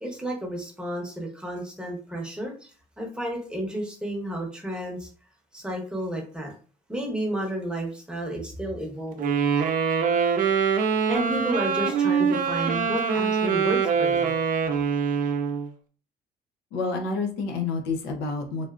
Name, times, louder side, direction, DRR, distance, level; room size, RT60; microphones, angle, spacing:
voice 1, 0.0-5.1 5.5-6.5 6.9-9.4 10.7-14.4, right 1 dB, 5° right, 0 dB, 0.9 m, -32 dB
Wind instrument woodwind instrument, 9.2-15.7, right 6 dB, 55° right, 0.5 m, -24 dB
voice 2, 16.7-18.7, left 4 dB, 85° left, 3 dB, 0.7 m, -28 dB
3.3 x 2.5 x 2.4 m, 0.40 s
cardioid pair, 110°, 17 cm